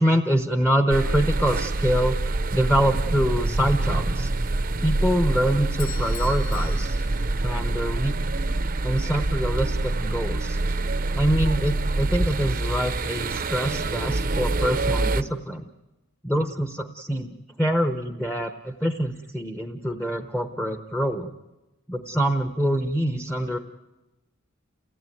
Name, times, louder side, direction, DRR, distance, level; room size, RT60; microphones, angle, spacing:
voice 1, 0.0-2.2 2.5-4.3 4.8-7.0 7.4-8.2 8.8-10.6 11.2-15.7 16.2-21.3 21.9-23.6, right 1 dB, 5° left, 6 dB, 0.9 m, -25 dB
sound 1, 0.9-15.2, right 2 dB, 40° right, 0.8 m, -26 dB
Bell / Doorbell, 5.8-7.9, left 9 dB, 65° left, 2.3 m, -42 dB
29.0 x 17.0 x 9.3 m, 1.1 s
head